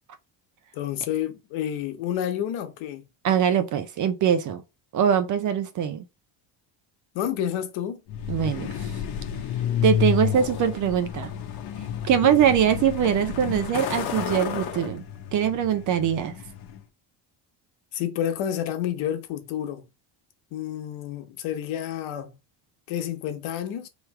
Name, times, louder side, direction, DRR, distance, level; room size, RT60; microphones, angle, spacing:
voice 1, 0.7-3.1 7.1-8.0 12.2-12.5 17.9-19.8 20.5-22.3 22.9-23.9, left 10 dB, 80° left, 1.1 m, -29 dB
voice 2, 3.2-4.6 4.9-6.0 8.3-8.9 9.8-11.3 12.0-15.0 15.3-16.3, right 9 dB, 40° right, 0.5 m, -22 dB
Truck, 8.1-16.8, left 9 dB, 50° left, 0.8 m, -30 dB
3.2 x 3.1 x 4.7 m
cardioid pair, 180°, 47 cm